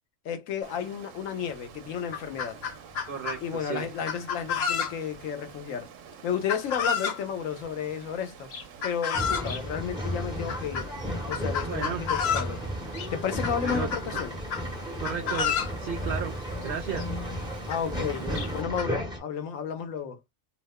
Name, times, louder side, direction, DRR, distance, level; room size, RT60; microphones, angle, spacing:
voice 1, 0.2-2.6 3.4-5.9 6.2-8.5 8.8-10.9 11.3-12.6 13.1-14.3 17.7-18.3 18.5-20.2, left 8 dB, 90° left, 1.1 m, -32 dB
Water, 0.6-18.6, right 8 dB, 80° right, 1.0 m, -49 dB
Chicken rooster, 1.5-1.6 1.9-3.4 4.1-5.2 6.5-7.2 8.5-9.6 10.5-10.9 11.3-12.5 12.9-13.1 13.4-14.7 15.0-15.7 16.7-16.8 17.0-17.1 17.7-17.8 18.3-18.9, left 7 dB, 65° left, 0.8 m, -30 dB
voice 2, 3.1-3.9 11.6-12.0 13.6-13.9 15.0-16.3 16.6-17.1 18.2-18.5, right 7 dB, 60° right, 0.6 m, -34 dB
Male speech man speaking / Chatter / Rattle, 9.1-19.2, equal, 5° right, 0.9 m, -34 dB
2.7 x 2.1 x 3.5 m
omnidirectional pair, 1.3 m